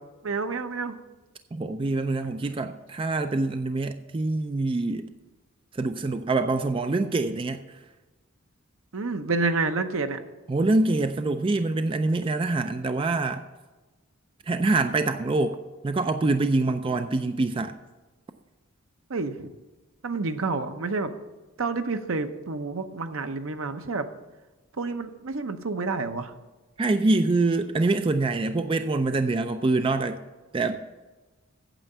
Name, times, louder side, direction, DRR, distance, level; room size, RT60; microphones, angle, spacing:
voice 1, 0.2-0.9 8.9-10.2 19.1-19.5 20.0-21.1 21.6-24.1 24.8-26.3, right 3 dB, 70° right, 8 dB, 0.8 m, -29 dB
voice 2, 1.5-5.1 5.7-7.7 10.5-13.4 14.5-17.7 26.8-30.2 30.5-30.9, right 2 dB, 25° right, 8 dB, 0.3 m, -25 dB
9.0 x 7.2 x 6.7 m, 1.2 s
head